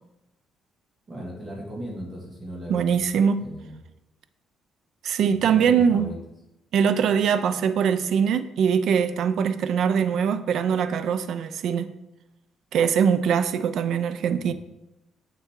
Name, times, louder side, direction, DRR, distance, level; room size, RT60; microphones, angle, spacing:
voice 1, 1.1-3.0 3.4-3.7 5.4-6.2 14.4-14.5, equal, 25° right, 1.9 m, -37 dB
voice 2, 2.7-3.5 5.0-6.1 6.7-11.9 12.7-14.5, right 7 dB, 60° right, 0.4 m, -22 dB
7.3 x 6.9 x 3.6 m
cardioid pair, 155°, 0 cm